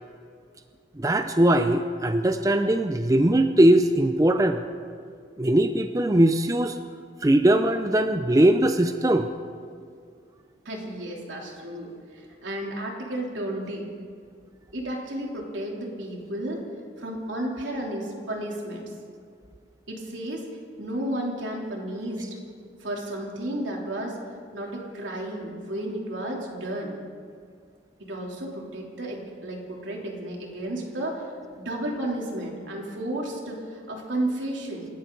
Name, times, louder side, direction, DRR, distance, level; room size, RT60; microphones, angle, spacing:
voice 1, 1.0-4.6 5.4-6.8 7.2-9.3, right 1 dB, 20° right, 8 dB, 0.5 m, -20 dB
voice 2, 10.6-13.9 14.7-16.6 17.0-18.9 19.9-20.5 20.8-22.2 22.8-24.2 24.5-26.9 28.0-31.2 31.5-34.9, right 1 dB, 90° right, -1 dB, 3.2 m, -32 dB
27.0 x 13.5 x 3.9 m, 2.2 s
head